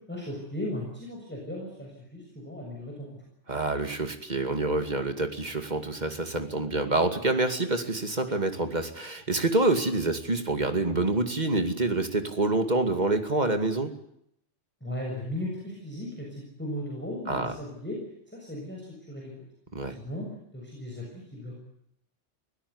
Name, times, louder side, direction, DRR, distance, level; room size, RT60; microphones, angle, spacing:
voice 1, 0.1-3.2 14.8-18.0 18.3-19.3 19.9-20.3 20.5-21.5, left 1 dB, 10° left, -2 dB, 7.0 m, -37 dB
voice 2, 3.5-13.9 17.3-17.5 19.7-19.9, right 2 dB, 35° right, 7 dB, 2.5 m, -27 dB
24.5 x 17.0 x 9.7 m, 0.75 s
omnidirectional pair, 1.2 m